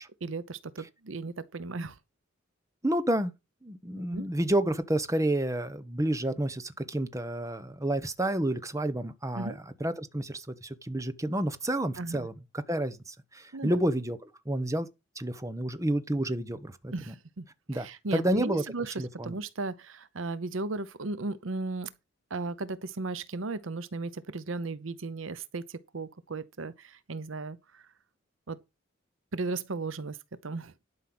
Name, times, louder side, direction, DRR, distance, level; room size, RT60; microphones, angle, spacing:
voice 1, 0.2-2.0 4.1-4.3 9.4-9.6 12.0-12.3 13.5-13.8 16.9-17.5 17.7-18.9 19.2-21.9 22.3-27.8 28.5-28.6 29.3-30.2 30.4-30.7, right 3 dB, 85° right, 0.8 m, -35 dB
voice 2, 2.8-3.3 3.6-14.2 14.4-14.9 15.2-17.1 17.7-18.6 19.0-19.4, right 1 dB, 15° right, 1.1 m, -30 dB
11.5 x 5.7 x 6.1 m
head